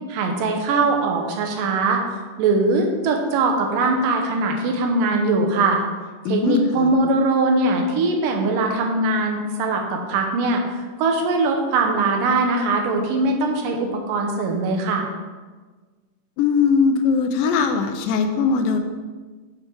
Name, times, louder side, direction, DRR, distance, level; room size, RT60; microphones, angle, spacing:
voice 1, 0.1-2.0 2.4-5.8 6.3-15.1, right 3 dB, 80° right, 2 dB, 2.5 m, -21 dB
voice 2, 6.3-6.9 16.4-18.8, left 5 dB, 85° left, 6 dB, 2.3 m, -20 dB
6.8 x 5.6 x 4.6 m, 1.4 s
omnidirectional pair, 4.0 m